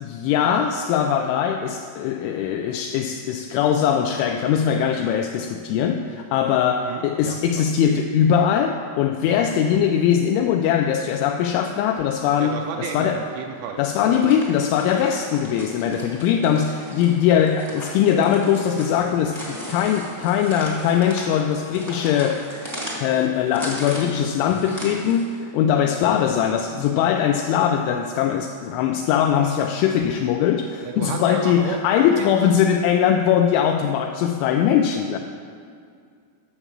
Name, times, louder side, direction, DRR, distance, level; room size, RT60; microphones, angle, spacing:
voice 1, 0.0-13.2 13.8-22.4 23.0-35.2, left 8 dB, 85° left, 4 dB, 2.7 m, -21 dB
voice 2, 6.8-7.6 12.4-13.8 30.8-32.3 35.1-35.2, right 7 dB, 85° right, 2 dB, 3.1 m, -33 dB
sound 1, 14.1-25.4, equal, 10° right, 0.7 m, -37 dB
9.9 x 7.0 x 7.2 m, 2.3 s
omnidirectional pair, 5.9 m